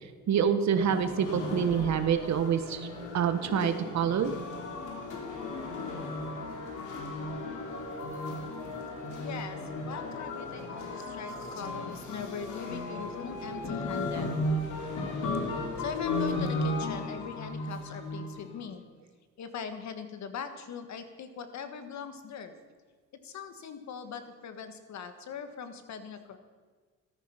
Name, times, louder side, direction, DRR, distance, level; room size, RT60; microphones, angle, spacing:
voice 1, 0.3-2.9 3.1-4.3, right 7 dB, 65° right, 9 dB, 1.2 m, -26 dB
sound 1, 0.7-18.6, left 2 dB, 80° left, 2.9 m, -35 dB
voice 2, 9.1-14.3 15.5-18.8 19.4-22.6 23.2-26.4, left 6 dB, 65° left, 9 dB, 1.6 m, -41 dB
13.5 x 13.5 x 5.7 m, 1.5 s
cardioid pair, 90°, 30 cm